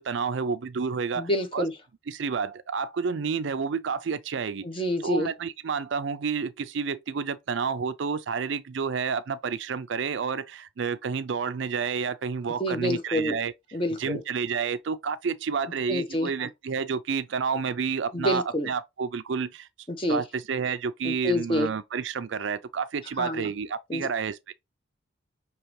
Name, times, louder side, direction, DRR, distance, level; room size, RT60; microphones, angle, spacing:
voice 1, 0.0-1.7 2.1-4.7 5.0-13.5 14.0-19.7 20.1-24.5, right 5 dB, 65° right, 0.4 m, -30 dB
voice 2, 1.1-1.7 4.6-5.3 12.6-13.3 13.7-14.2 15.9-16.5 18.1-18.7 19.9-20.2 21.0-21.7 23.2-23.5 23.9-24.0, left 1 dB, 25° left, 0.8 m, -27 dB
5.7 x 2.9 x 3.1 m
head